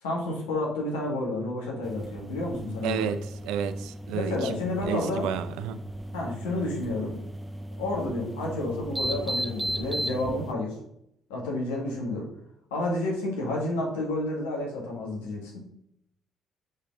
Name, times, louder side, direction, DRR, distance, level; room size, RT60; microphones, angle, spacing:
voice 1, 0.0-3.1 4.1-5.3 6.1-7.2 7.8-10.8 11.3-12.3 12.7-15.6, left 2 dB, 80° left, -1 dB, 1.6 m, -30 dB
sound 1, 1.8-10.5, equal, 10° right, 0.4 m, -36 dB
voice 2, 2.8-4.6 4.9-5.8, right 7 dB, 75° right, 10 dB, 0.4 m, -31 dB
6.3 x 4.1 x 3.7 m, 0.75 s
hypercardioid pair, 50°, 0 cm